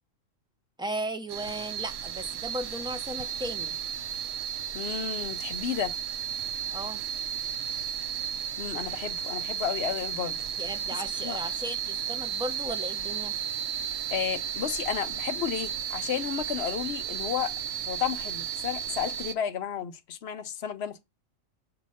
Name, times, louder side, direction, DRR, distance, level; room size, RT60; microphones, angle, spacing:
voice 1, 0.8-3.8 6.7-7.0 10.6-13.3, right 1 dB, 5° right, 0.4 m, -36 dB
sound 1, 1.3-19.3, right 9 dB, 85° right, 1.0 m, -34 dB
voice 2, 4.7-5.9 8.6-10.4 11.2-11.4 14.1-17.5 17.9-21.0, left 9 dB, 65° left, 0.8 m, -32 dB
6.1 x 2.8 x 5.4 m
omnidirectional pair, 1.3 m